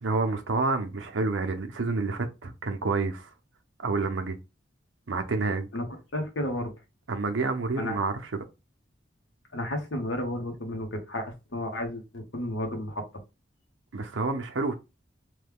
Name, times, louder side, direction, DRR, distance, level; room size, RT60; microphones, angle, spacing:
voice 1, 0.0-3.3 3.8-4.4 5.1-5.7 7.1-8.4 13.9-14.7, right 3 dB, 90° right, 0.6 m, -28 dB
voice 2, 6.1-6.7 7.8-8.0 9.5-13.0, left 1 dB, 80° left, 1.0 m, -32 dB
3.2 x 2.2 x 3.5 m
head